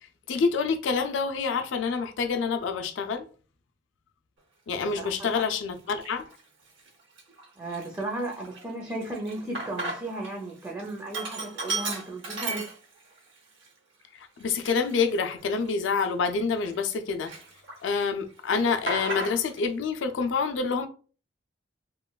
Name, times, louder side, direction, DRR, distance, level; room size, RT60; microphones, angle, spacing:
voice 1, 0.3-3.3 4.7-6.3 14.1-17.3 17.8-20.9, left 5 dB, 75° left, 0.4 m, -27 dB
voice 2, 5.0-5.4 7.6-12.7, right 2 dB, 15° right, 0.4 m, -35 dB
Sink (filling or washing), 5.0-5.2 5.9-6.4 6.8-6.9 7.2-10.3 10.6-13.2 13.6-13.7 14.4-16.9 17.3-18.0 18.3-19.7, right 3 dB, 75° right, 0.7 m, -35 dB
3.0 x 2.1 x 2.2 m
head